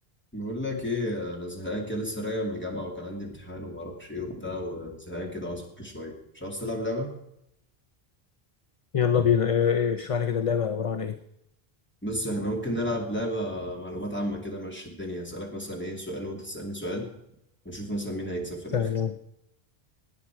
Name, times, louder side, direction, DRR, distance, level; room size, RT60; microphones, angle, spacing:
voice 1, 0.3-7.1 12.0-17.1 17.6-18.9, equal, 10° left, 0 dB, 2.6 m, -33 dB
voice 2, 8.9-11.1 18.7-19.1, left 7 dB, 40° left, 9 dB, 0.7 m, -24 dB
18.0 x 9.3 x 4.7 m, 0.80 s
omnidirectional pair, 1.0 m